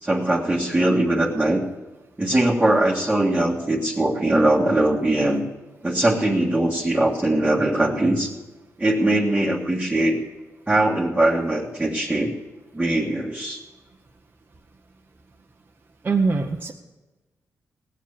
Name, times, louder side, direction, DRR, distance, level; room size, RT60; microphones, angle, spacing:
voice 1, 0.0-1.6 2.2-5.4 5.8-8.3 8.8-10.2 10.7-12.3 12.7-13.6, right 1 dB, 15° right, -4 dB, 1.8 m, -21 dB
voice 2, 16.0-16.7, right 4 dB, 35° right, 0 dB, 1.0 m, -22 dB
18.5 x 7.5 x 7.0 m, 1.2 s
cardioid pair, 110°, 6 cm